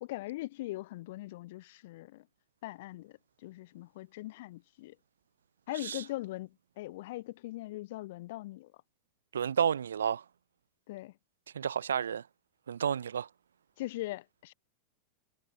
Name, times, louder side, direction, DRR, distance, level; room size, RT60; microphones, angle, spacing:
voice 1, 0.0-2.3 2.6-4.9 5.7-8.7 10.9-11.1 13.8-14.5, left 18 dB, 50° left, 0.9 m, -41 dB
voice 2, 9.3-10.2 11.5-12.2 12.7-13.3, right 8 dB, 65° right, 0.7 m, -31 dB
figure-of-eight pair, 90°, 0 cm